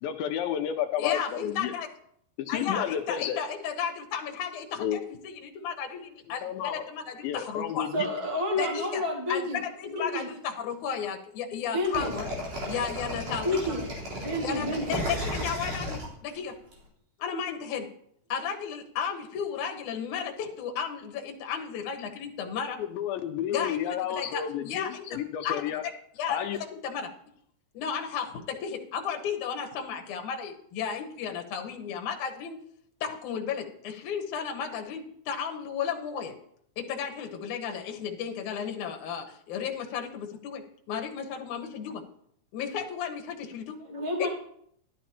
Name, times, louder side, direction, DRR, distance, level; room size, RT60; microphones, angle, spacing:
voice 1, 0.0-1.7 2.4-3.4 4.8-5.0 6.4-6.7 7.2-8.1 22.8-25.8 26.3-26.6, left 9 dB, 85° left, 4 dB, 2.4 m, -31 dB
voice 2, 1.0-1.9 2.5-7.9 8.6-9.0 9.3-12.3 12.6-13.8 14.4-16.6 17.2-17.9 18.3-22.8 23.5-27.1 27.7-32.6 33.0-36.3 36.8-42.0 42.5-43.8 44.2-44.3, left 7 dB, 65° left, 3 dB, 2.3 m, -34 dB
voice 3, 7.9-9.6 9.9-10.3 11.7-12.1 13.4-13.8 14.2-15.0 43.8-44.3, left 1 dB, 20° right, -1 dB, 0.7 m, -29 dB
sound 1, 11.9-16.7, equal, 60° right, 5.1 m, -34 dB
14.0 x 12.0 x 2.9 m, 0.69 s
omnidirectional pair, 4.2 m